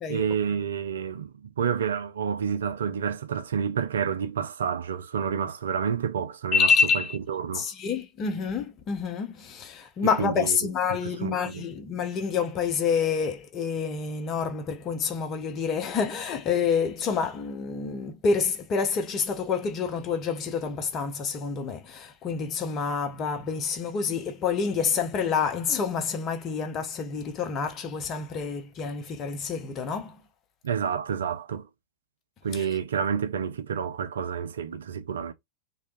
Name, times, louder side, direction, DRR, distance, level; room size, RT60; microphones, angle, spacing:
voice 1, 0.1-6.7 7.3-7.7 10.2-10.6 11.0-11.6 30.6-31.7 32.4-35.3, right 7 dB, 65° right, 0.3 m, -29 dB
voice 2, 6.5-7.2 7.5-30.2 32.5-32.7, left 5 dB, 30° left, 0.6 m, -28 dB
2.7 x 2.2 x 2.4 m
figure-of-eight pair, 90°, 0 cm